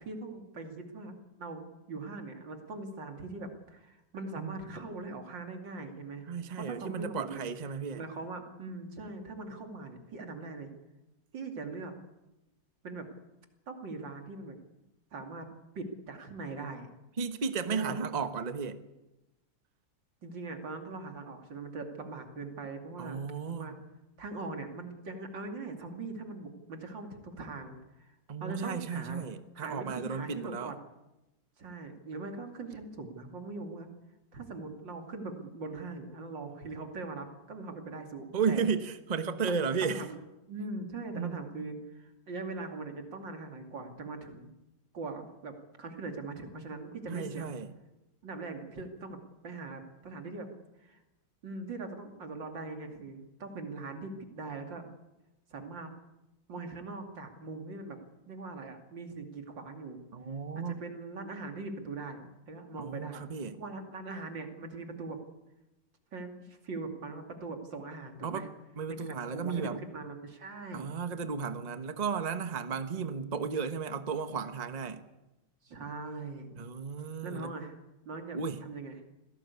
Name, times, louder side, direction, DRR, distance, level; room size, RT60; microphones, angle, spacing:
voice 1, 0.0-6.2 6.6-7.4 7.9-10.7 11.3-11.9 12.8-13.1 13.7-14.6 15.1-15.5 15.7-16.9 17.7-18.0 20.2-23.2 23.5-23.8 24.2-28.1 28.4-29.2 29.5-30.8 31.6-33.9 34.3-38.7 39.5-40.2 40.5-44.5 44.9-45.5 45.8-47.5 48.2-50.5 50.8-51.0 51.4-54.9 55.5-55.9 56.5-58.0 58.3-60.0 60.5-63.2 63.6-65.2 66.1-68.5 68.9-70.9 73.0-73.5 75.6-76.5 77.2-77.8 78.0-78.9, right 3 dB, 80° right, 3.3 m, -41 dB
voice 2, 6.3-8.0 17.2-18.8 23.0-23.7 28.3-30.7 38.3-40.1 41.1-41.4 47.1-47.7 60.1-60.8 62.8-63.6 68.2-68.5 68.8-69.8 70.7-75.0 76.6-77.5 78.3-78.6, right 5 dB, 25° right, 1.1 m, -34 dB
25.5 x 17.5 x 8.4 m
omnidirectional pair, 2.0 m